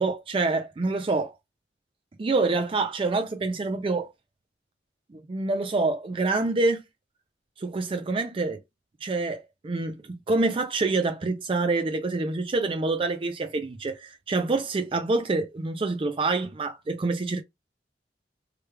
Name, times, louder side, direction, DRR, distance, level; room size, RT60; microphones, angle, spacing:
voice 1, 0.0-1.3 2.2-4.1 5.1-6.8 7.6-8.6 9.0-17.4, right 3 dB, 30° right, 0.3 m, -26 dB
3.2 x 2.3 x 3.2 m
head